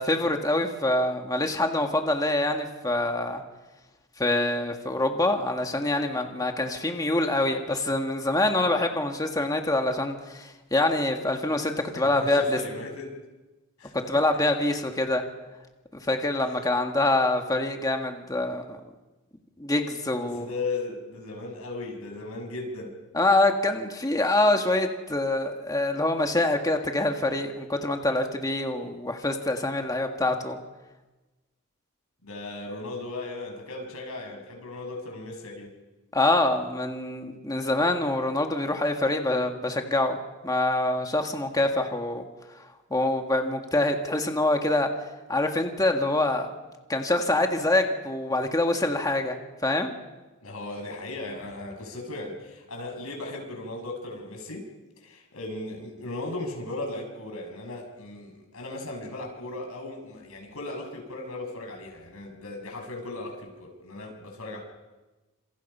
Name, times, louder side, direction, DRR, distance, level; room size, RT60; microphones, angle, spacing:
voice 1, 0.0-3.4 4.2-12.6 13.9-15.2 16.1-18.8 19.6-20.5 23.1-30.6 36.1-40.2 40.4-42.2 42.9-44.9 45.3-46.5 46.9-49.4 49.6-49.9, left 2 dB, 15° left, 4 dB, 1.8 m, -25 dB
voice 2, 11.9-13.2 13.8-14.4 20.1-23.0 32.2-35.7 50.4-54.6 55.0-64.6, left 2 dB, 75° left, 2 dB, 6.5 m, -37 dB
28.0 x 27.5 x 5.6 m, 1.1 s
head